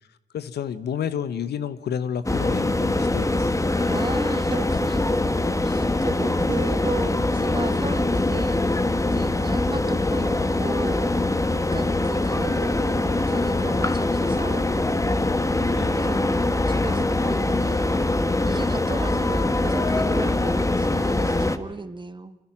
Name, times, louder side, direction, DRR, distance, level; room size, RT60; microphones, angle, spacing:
voice 1, 0.3-3.5 15.7-16.0, left 8 dB, 80° left, 13 dB, 1.1 m, -30 dB
sound 1, 2.3-21.6, left 2 dB, 20° left, 1.6 m, -23 dB
voice 2, 3.8-5.1 5.6-8.8 9.1-11.4 11.7-14.7 15.5-16.2 16.7-22.4, right 3 dB, 30° right, 10 dB, 1.9 m, -35 dB
30.0 x 25.0 x 6.1 m, 0.89 s
supercardioid pair, 45°, 17 cm